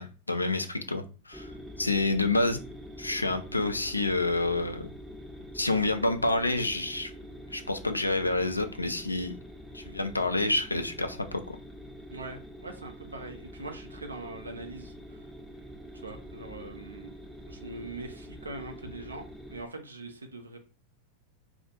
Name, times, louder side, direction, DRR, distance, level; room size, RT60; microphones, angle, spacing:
voice 1, 0.0-1.5 1.8-2.6 3.0-4.9 5.5-7.1 7.5-9.3 9.7-11.6, left 2 dB, 85° left, 7 dB, 0.3 m, -28 dB
sound 1, 1.3-19.6, equal, ahead, 0.5 m, -45 dB
voice 2, 12.1-15.2 16.0-17.1 17.5-20.6, right 2 dB, 80° right, 4 dB, 0.4 m, -42 dB
2.3 x 2.0 x 2.9 m, 0.34 s
figure-of-eight pair, 90°, 0 cm